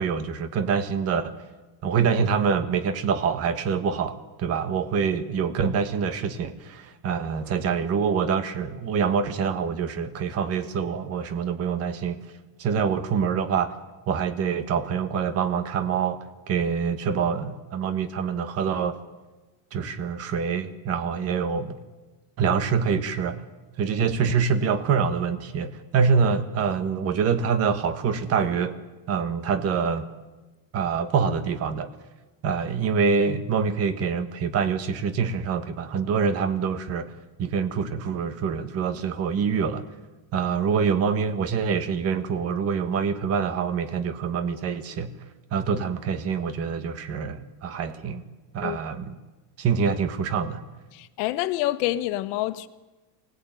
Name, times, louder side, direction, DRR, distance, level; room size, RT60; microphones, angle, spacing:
voice 1, 0.0-1.3 1.8-12.2 12.6-13.7 14.1-19.0 19.7-21.8 22.4-23.4 23.8-28.8 29.1-30.0 30.7-31.9 32.4-37.1 37.4-39.8 40.3-45.1 45.5-48.2 48.5-49.1 49.6-50.6, right 6 dB, 30° right, 1.4 m, -25 dB
voice 2, 50.9-52.7, left 15 dB, 70° left, 1.5 m, -27 dB
24.5 x 19.0 x 9.3 m
cardioid pair, 175°, 48 cm